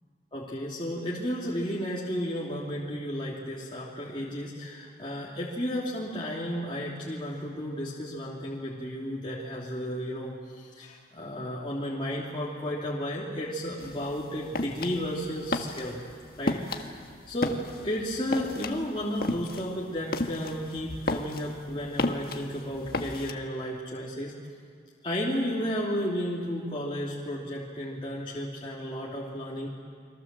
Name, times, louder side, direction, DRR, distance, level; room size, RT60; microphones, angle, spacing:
voice 1, 0.3-16.0 16.4-17.0 17.3-17.6 17.8-24.3 25.0-29.7, equal, 25° left, -5 dB, 3.0 m, -33 dB
sound 1, 13.8-23.3, left 2 dB, 50° left, 1.6 m, -33 dB
30.0 x 24.0 x 7.6 m, 2.1 s
head